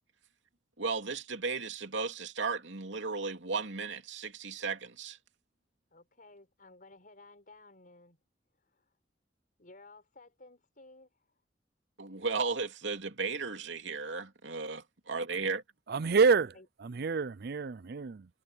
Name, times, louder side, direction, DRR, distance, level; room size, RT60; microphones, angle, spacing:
voice 1, 0.8-5.2 12.0-15.6, right 4 dB, 85° right, 2.9 m, -35 dB
voice 2, 5.9-8.2 8.6-8.9 9.6-11.3 16.5-16.7, left 2 dB, 50° left, 6.0 m, -56 dB
voice 3, 15.9-16.5 16.8-18.3, right 5 dB, 60° right, 0.5 m, -27 dB
head